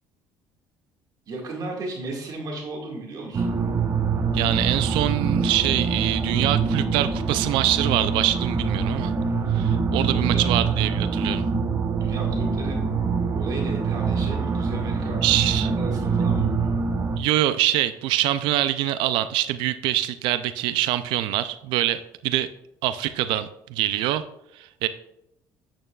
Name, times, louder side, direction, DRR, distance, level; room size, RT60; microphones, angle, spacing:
voice 1, 1.3-3.5 10.1-10.4 12.0-12.9 13.3-15.2 15.6-16.7, right 2 dB, 50° right, -1 dB, 1.9 m, -35 dB
sound 1, 3.3-17.2, right 5 dB, 35° right, 0.9 m, -24 dB
voice 2, 4.3-9.1 9.5-11.4 15.2-15.7 17.2-22.5 22.8-24.2 24.5-24.9, right 13 dB, 80° right, 13 dB, 0.4 m, -24 dB
8.8 x 8.8 x 2.4 m, 0.81 s
cardioid pair, 110°, 8 cm